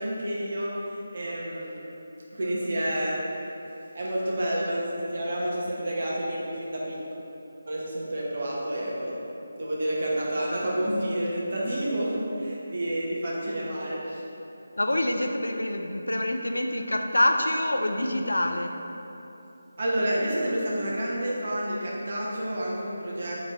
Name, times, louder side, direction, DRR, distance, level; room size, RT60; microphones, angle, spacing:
voice 1, 0.0-1.8 2.3-3.2 3.9-7.0 7.7-9.2 9.5-14.2 19.8-23.5, right 1 dB, 55° right, -5 dB, 0.9 m, -29 dB
voice 2, 14.8-18.7, left 1 dB, 90° left, 4 dB, 0.3 m, -26 dB
3.4 x 3.0 x 4.0 m, 3.0 s
figure-of-eight pair, 160°, 0 cm